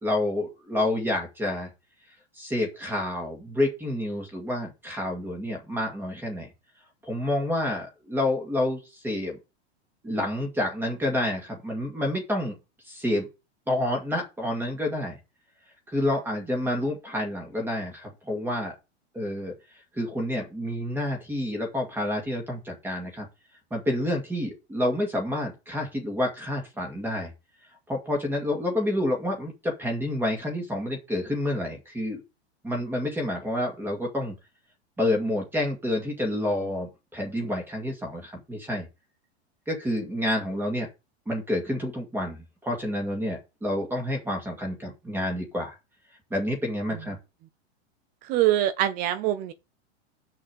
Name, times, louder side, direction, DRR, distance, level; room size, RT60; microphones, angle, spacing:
voice 1, 0.0-1.7 2.4-6.5 7.0-9.4 10.0-12.6 12.9-13.3 13.7-15.2 15.9-18.7 19.1-19.5 19.9-23.3 23.7-27.3 27.9-32.2 32.6-34.3 35.0-38.9 39.7-40.9 41.3-45.8 46.3-47.2, left 1 dB, 5° right, 2.2 m, -29 dB
voice 2, 48.2-49.5, right 13 dB, 25° right, 0.5 m, -24 dB
6.3 x 5.6 x 6.6 m
supercardioid pair, 155°, 33 cm